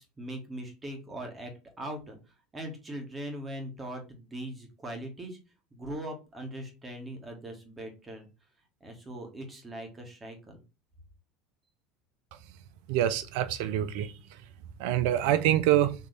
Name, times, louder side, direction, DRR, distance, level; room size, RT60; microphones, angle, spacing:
voice 1, 0.0-1.5 1.8-2.2 2.5-5.4 5.7-8.3 8.8-10.6, right 1 dB, 20° right, 1.7 m, -40 dB
voice 2, 12.9-14.1 14.8-15.9, right 12 dB, 70° right, 0.5 m, -25 dB
4.6 x 3.1 x 3.3 m
hypercardioid pair, 80°, 0 cm